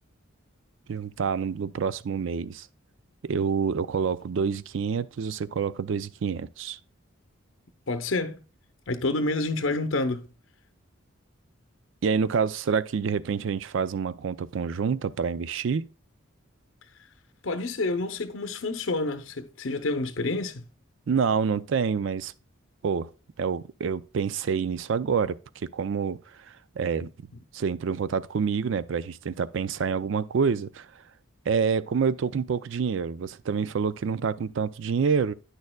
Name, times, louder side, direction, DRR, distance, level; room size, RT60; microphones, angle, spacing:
voice 1, 0.9-2.7 3.2-6.8 12.0-15.9 21.1-22.3 22.8-23.1 23.4-26.2 26.8-27.1 27.5-30.9 31.5-35.3, right 6 dB, 65° right, 0.4 m, -27 dB
voice 2, 7.9-8.4 8.9-10.3 17.4-20.6, left 2 dB, 65° left, 0.7 m, -28 dB
9.4 x 6.5 x 2.2 m
head